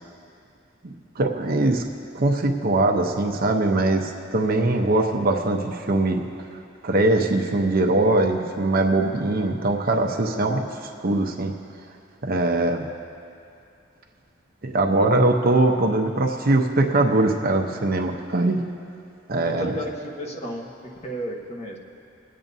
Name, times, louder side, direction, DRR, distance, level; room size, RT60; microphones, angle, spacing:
voice 1, 0.8-1.8 2.1-6.2 6.8-10.7 11.0-11.5 12.2-12.8 14.6-18.6 19.3-19.7, right 2 dB, 50° right, 3 dB, 0.8 m, -21 dB
voice 2, 19.4-20.7 21.0-21.8, equal, 35° left, -1 dB, 1.2 m, -32 dB
26.0 x 8.8 x 2.7 m, 2.6 s
head